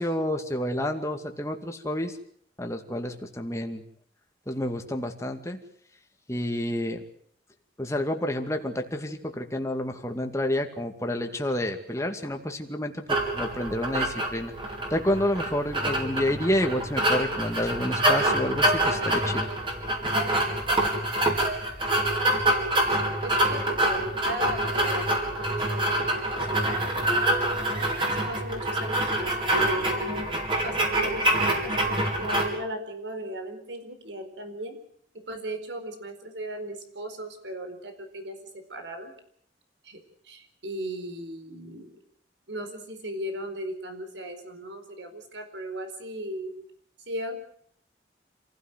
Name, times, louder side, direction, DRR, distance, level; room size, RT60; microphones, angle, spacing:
voice 1, 0.0-2.1 2.6-3.8 4.5-5.6 6.3-7.0 7.8-14.5 14.9-19.5, left 1 dB, 15° left, 4 dB, 2.3 m, -29 dB
sound 1, 13.1-32.5, right 1 dB, 30° right, 5.0 m, -26 dB
voice 2, 23.2-29.9 30.5-34.8 35.1-39.1 39.8-42.0 42.5-46.5 47.1-47.4, right 1 dB, 85° right, 6 dB, 4.6 m, -37 dB
27.5 x 16.0 x 8.1 m, 0.64 s
head